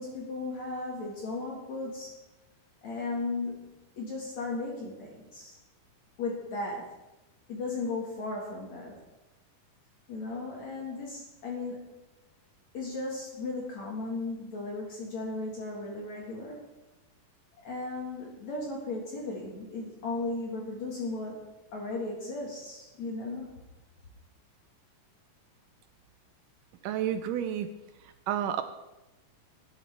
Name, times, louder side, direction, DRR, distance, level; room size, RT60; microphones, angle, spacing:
voice 1, 0.0-2.1 2.8-5.6 6.2-6.9 7.5-9.0 10.1-12.0 12.7-16.7 17.6-21.4 21.7-23.5, left 3 dB, 55° left, -2 dB, 2.9 m, -36 dB
voice 2, 26.8-27.7 28.3-28.6, right 10 dB, 80° right, 9 dB, 2.1 m, -30 dB
18.0 x 11.0 x 3.5 m, 1.0 s
omnidirectional pair, 4.0 m